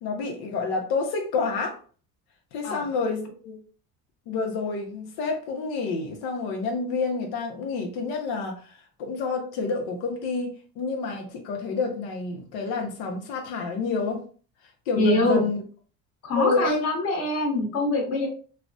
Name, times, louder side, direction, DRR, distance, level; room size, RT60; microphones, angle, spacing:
voice 1, 0.0-1.8 2.5-3.6 4.3-8.7 9.0-14.2 14.9-15.6 16.4-16.9, left 4 dB, 80° left, 0.8 m, -28 dB
voice 2, 15.0-15.5 16.2-18.3, left 1 dB, 40° left, 1.1 m, -24 dB
3.1 x 2.1 x 2.6 m
cardioid pair, 120°, 36 cm